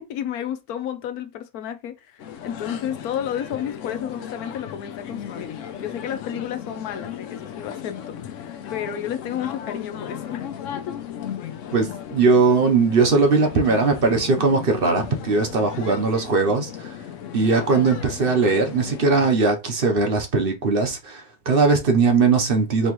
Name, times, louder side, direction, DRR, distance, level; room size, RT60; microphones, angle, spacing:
voice 1, 0.1-5.5 5.8-10.5 10.9-11.0, left 9 dB, 85° left, 1.2 m, -31 dB
sound 1, 2.2-19.3, left 9 dB, 65° left, 0.9 m, -36 dB
voice 2, 11.7-17.0 17.3-22.9, right 4 dB, 45° right, 0.9 m, -20 dB
4.3 x 3.0 x 3.0 m
omnidirectional pair, 1.5 m